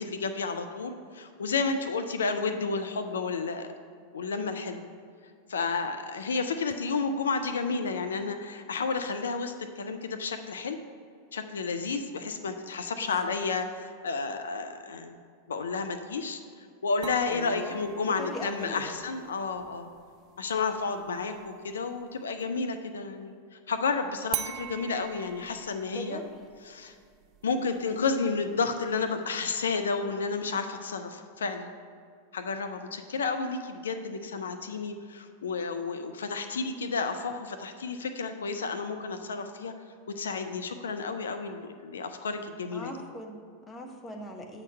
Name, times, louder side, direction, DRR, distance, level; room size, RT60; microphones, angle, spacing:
voice 1, 0.0-3.7 4.1-4.8 5.5-10.8 11.3-15.2 15.5-19.9 20.4-26.2 26.7-26.9 27.4-31.7 32.3-39.7 40.2-42.9, left 4 dB, 65° left, 7 dB, 0.4 m, -31 dB
voice 2, 13.0-13.4 17.3-17.8 18.0-19.0 25.9-26.3 42.7-44.6, equal, 15° left, 2 dB, 0.9 m, -40 dB
sound 1, 17.0-22.6 24.3-29.3, right 9 dB, 35° right, 0.4 m, -44 dB
7.2 x 3.9 x 6.4 m, 2.2 s
figure-of-eight pair, 90°, 0 cm